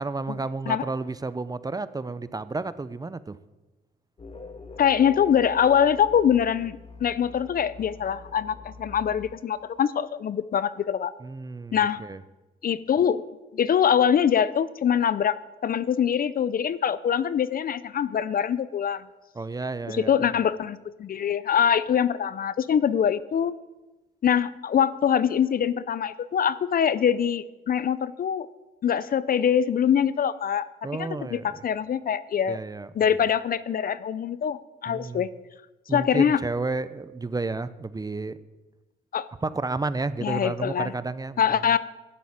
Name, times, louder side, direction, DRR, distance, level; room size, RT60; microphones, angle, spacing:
voice 1, 0.0-3.4 11.2-12.2 19.3-20.2 30.8-31.6 32.5-32.9 34.9-35.3 35.9-38.4 39.4-41.4, right 3 dB, 20° right, 15 dB, 0.6 m, -31 dB
sound 1, 4.2-9.7, left 3 dB, 30° left, 1.6 m, -45 dB
voice 2, 4.8-11.1 11.7-12.0 12.6-13.2 13.5-19.0 19.9-23.5 24.2-28.5 28.8-30.7 31.0-32.6 33.0-35.3 35.9-36.4 39.1-39.3 40.2-40.9 41.4-41.8, left 8 dB, 45° left, 17 dB, 0.6 m, -24 dB
12.0 x 7.8 x 8.7 m, 1.1 s
cardioid pair, 90°, 20 cm